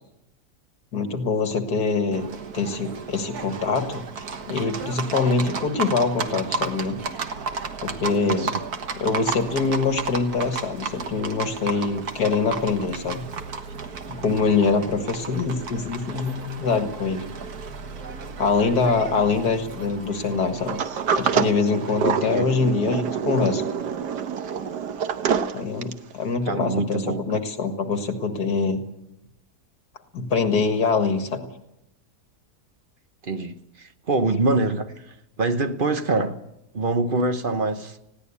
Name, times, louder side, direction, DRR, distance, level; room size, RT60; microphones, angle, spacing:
voice 1, 0.9-2.3 2.5-4.0 4.5-7.0 7.8-8.5 9.0-13.3 14.1-17.2 18.4-20.8 21.1-23.6 25.5-28.8 30.1-31.4, left 4 dB, 75° left, 2.4 m, -24 dB
Livestock farm animals working animals, 2.1-22.0, right 5 dB, 70° right, 1.9 m, -34 dB
Sliding door, 20.7-26.1, right 7 dB, 90° right, 1.7 m, -26 dB
voice 2, 22.2-22.5 26.5-27.2 33.2-34.9 35.4-36.4 36.7-38.0, right 3 dB, 35° right, 1.1 m, -24 dB
19.5 x 16.5 x 8.5 m
omnidirectional pair, 1.7 m